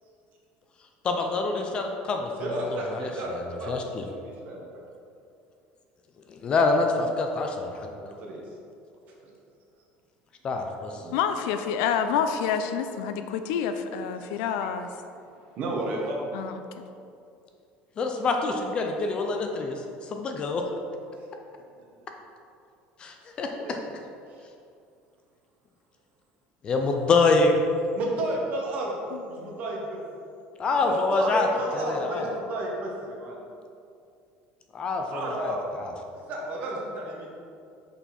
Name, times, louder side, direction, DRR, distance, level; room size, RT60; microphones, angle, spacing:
voice 1, 1.0-2.8 3.7-4.0 6.4-7.9 10.4-11.0 18.0-20.6 23.0-23.8 26.6-27.5 30.6-31.5 31.7-32.3 34.7-35.9, left 3 dB, 25° left, 3 dB, 0.4 m, -26 dB
voice 2, 2.4-3.3 3.6-4.6 7.9-8.4 9.0-9.3 10.9-11.4 15.5-16.3 21.8-21.9 23.6-23.7 24.3-24.4 27.9-28.9 29.2-30.0 30.8-33.4 35.1-35.6 36.3-37.3, right 1 dB, 40° right, -2 dB, 1.1 m, -32 dB
voice 3, 11.1-14.9 16.3-16.9 29.1-29.5, left 7 dB, 85° left, 8 dB, 0.4 m, -28 dB
5.6 x 4.5 x 4.2 m, 2.5 s
cardioid pair, 180°, 4 cm